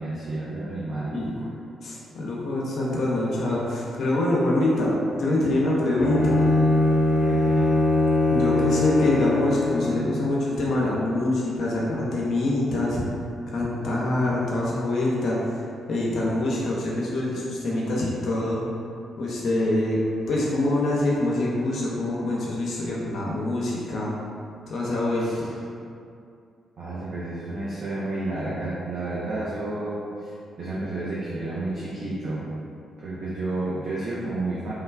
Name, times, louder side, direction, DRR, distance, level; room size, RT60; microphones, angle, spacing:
voice 1, 0.0-1.5 7.2-7.7 25.2-25.5 26.8-30.3 30.6-32.4 33.0-34.7, right 2 dB, 60° right, -9 dB, 0.5 m, -31 dB
voice 2, 1.8-6.3 8.3-13.0 13.5-15.6 15.9-18.6 19.2-20.0 20.3-24.1 24.7-25.5, left 1 dB, 65° left, -5 dB, 0.5 m, -25 dB
Bowed string instrument, 6.0-10.0, left 1 dB, 25° left, 0.8 m, -21 dB
3.2 x 2.2 x 2.2 m, 2.5 s
hypercardioid pair, 50°, 0 cm